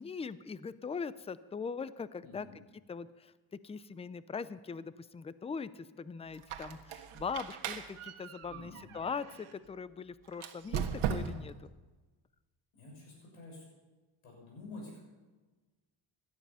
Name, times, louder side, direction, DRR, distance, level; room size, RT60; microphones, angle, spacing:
voice 1, 0.0-2.5 2.9-3.3 3.6-11.7, left 5 dB, 15° left, 16 dB, 0.4 m, -41 dB
voice 2, 2.2-2.6 8.5-9.0 12.7-13.6 14.2-15.0, left 2 dB, 80° left, -1 dB, 6.7 m, -49 dB
Squeak, 6.3-9.5 10.3-11.6, right 8 dB, 80° right, 1.5 m, -38 dB
17.5 x 12.5 x 5.6 m, 1.2 s
cardioid pair, 130°, 50 cm